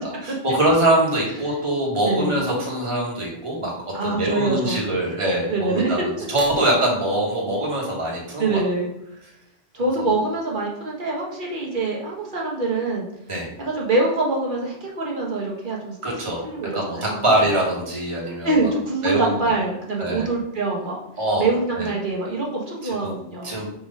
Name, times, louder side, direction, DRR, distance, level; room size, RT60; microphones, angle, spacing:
voice 1, 0.2-8.6 10.0-10.1 13.3-13.5 16.0-16.4 16.7-18.7 19.0-19.5 20.0-20.3 21.2-21.5 21.8-21.9 22.8-23.7, right 1 dB, 25° right, -3 dB, 1.6 m, -23 dB
voice 2, 2.1-2.4 3.9-4.8 5.5-5.9 8.4-8.9 9.7-13.1 13.6-16.2 16.4-17.2 18.4-21.0 21.4-23.6, right 3 dB, 45° right, -2 dB, 1.5 m, -24 dB
4.8 x 4.0 x 5.2 m, 0.81 s
omnidirectional pair, 1.2 m